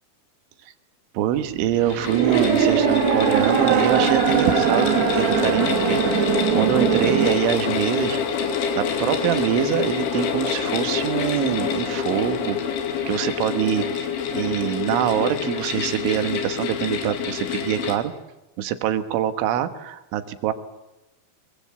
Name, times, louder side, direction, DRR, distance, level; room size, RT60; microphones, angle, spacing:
voice 1, 1.2-8.2 8.8-12.6 13.1-18.1 18.6-20.5, right 11 dB, 90° right, 9 dB, 3.8 m, -24 dB
sound 1, 1.3-7.4, right 10 dB, 70° right, 3.3 m, -21 dB
sound 2, 1.7-18.0, left 6 dB, 85° left, 4.7 m, -26 dB
24.0 x 23.0 x 8.3 m, 0.97 s
omnidirectional pair, 5.4 m